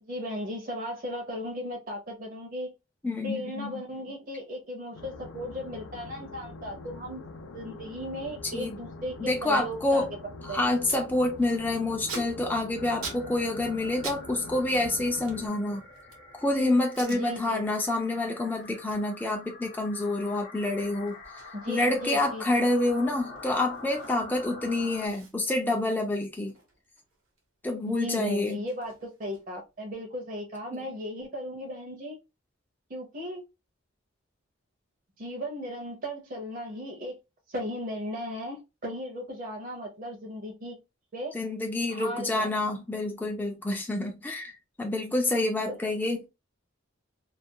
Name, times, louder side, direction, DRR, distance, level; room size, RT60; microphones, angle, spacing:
voice 1, 0.0-2.7 3.2-7.2 7.5-10.1 10.5-10.6 17.1-17.6 21.5-22.4 27.7-32.2 32.9-33.4 35.2-37.2 37.5-40.8 41.1-41.3 41.9-42.5 45.7-45.8, equal, 40° right, 0.6 m, -36 dB
voice 2, 3.0-3.8 8.5-8.8 9.2-10.1 10.4-15.8 16.4-21.1 21.7-26.5 27.6-28.6 30.7-30.9 41.3-46.3, left 2 dB, 10° left, 0.3 m, -28 dB
sound 1, 4.9-15.5, left 3 dB, 75° left, 0.4 m, -44 dB
Packing tape duct tape, 10.3-10.4 10.6-11.1 11.4-14.2 14.5-16.3 16.8-17.2 17.7-17.9 18.2-24.5 24.7-24.8 25.1-27.4 27.7-29.7, right 4 dB, 85° right, 1.0 m, -46 dB
sound 2, 12.8-25.1, left 3 dB, 45° left, 0.7 m, -46 dB
2.4 x 2.2 x 2.6 m
head